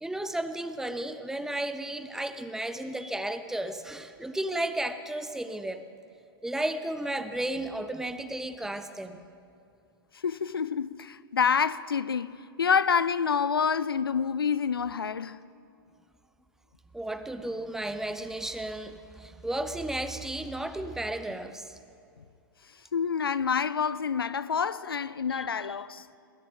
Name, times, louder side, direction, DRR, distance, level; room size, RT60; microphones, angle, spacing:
voice 1, 0.0-5.8 6.4-9.2 16.9-21.8 25.3-25.8, right 1 dB, 5° right, 0.7 m, -33 dB
voice 2, 10.2-15.5 22.9-26.1, left 6 dB, 70° left, 0.5 m, -27 dB
20.5 x 7.5 x 8.9 m
figure-of-eight pair, 105°, 13 cm